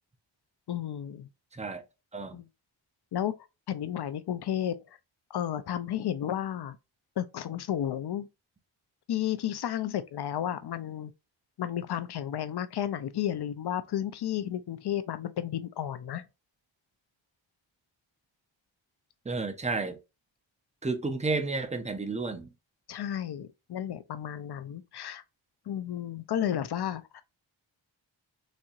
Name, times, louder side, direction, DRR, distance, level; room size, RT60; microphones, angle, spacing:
voice 1, 0.7-1.3 2.3-2.5 3.1-3.3 3.7-4.7 5.3-6.8 7.2-8.3 9.1-11.1 11.6-16.2 22.9-25.2 25.7-27.2, left 10 dB, 55° left, 0.5 m, -32 dB
voice 2, 1.5-1.8 2.1-2.4 19.3-20.0 20.8-22.5, right 3 dB, 15° right, 0.5 m, -31 dB
4.2 x 2.7 x 2.4 m
wide cardioid pair, 145°, 48 cm